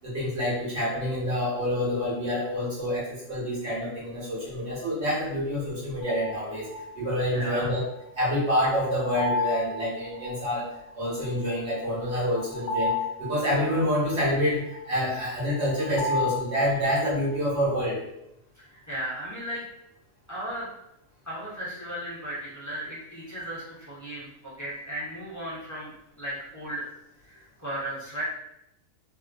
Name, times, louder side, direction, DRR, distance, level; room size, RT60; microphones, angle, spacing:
voice 1, 0.0-6.7 6.9-7.8 8.2-10.7 10.9-12.9 13.2-18.0, equal, 55° right, -6 dB, 1.1 m, -27 dB
sound 1, 6.0-17.3, left 3 dB, 65° left, 0.9 m, -34 dB
voice 2, 7.3-7.7 18.6-19.6 20.3-20.7 21.2-25.9 26.2-26.8 27.2-28.2, right 1 dB, 25° left, -9 dB, 0.3 m, -36 dB
2.5 x 2.5 x 2.3 m, 0.82 s
omnidirectional pair, 1.5 m